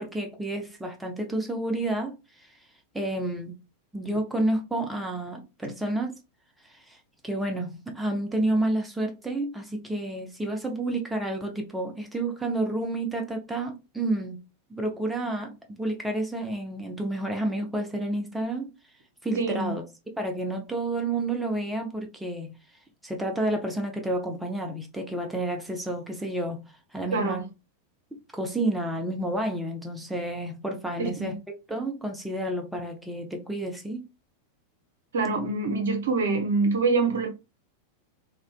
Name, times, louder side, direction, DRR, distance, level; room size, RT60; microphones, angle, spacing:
voice 1, 0.0-2.5 2.9-3.6 3.9-6.1 6.6-7.0 7.2-14.4 14.7-18.7 19.2-19.8 20.1-22.5 23.0-26.6 26.9-27.4 28.3-31.3 31.7-34.0, right 1 dB, 5° right, 0.5 m, -30 dB
voice 2, 19.4-19.7 27.1-27.4 31.0-31.3 35.1-37.3, right 3 dB, 65° right, 0.7 m, -25 dB
2.5 x 2.1 x 2.4 m
figure-of-eight pair, 90°, 0 cm